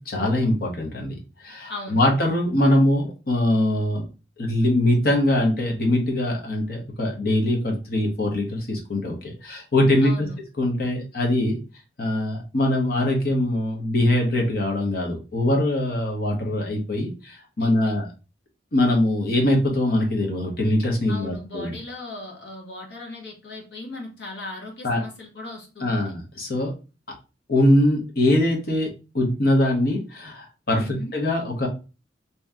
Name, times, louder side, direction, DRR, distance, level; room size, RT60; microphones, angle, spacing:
voice 1, 0.0-4.0 4.4-10.3 10.6-11.6 12.0-18.1 18.7-21.8 24.8-25.0 25.8-26.7 27.5-28.9 29.1-31.7, left 1 dB, 55° left, 1 dB, 1.0 m, -22 dB
voice 2, 1.7-2.1 10.0-10.4 17.6-18.0 21.1-26.1 30.8-31.1, left 2 dB, 75° left, 0 dB, 1.3 m, -38 dB
3.0 x 2.8 x 3.6 m, 0.32 s
head